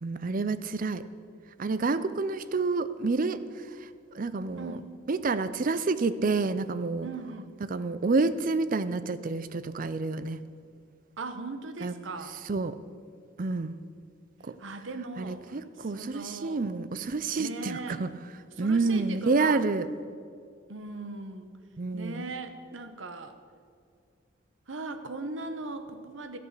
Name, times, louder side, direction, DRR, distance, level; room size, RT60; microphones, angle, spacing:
voice 1, 0.0-1.0 1.6-3.4 3.8-3.9 4.1-4.8 5.1-7.1 7.6-10.4 11.8-11.9 12.5-12.8 13.4-13.8 14.4-14.6 15.2-18.1 18.6-19.9 21.8-22.2, right 3 dB, 45° right, 13 dB, 0.5 m, -28 dB
voice 2, 4.6-4.9 7.0-7.5 11.2-12.3 14.6-16.6 17.4-18.0 18.6-19.6 20.7-21.5 21.9-23.4 24.7-26.4, right 3 dB, 80° right, 8 dB, 1.0 m, -39 dB
13.5 x 8.2 x 6.7 m, 2.2 s
head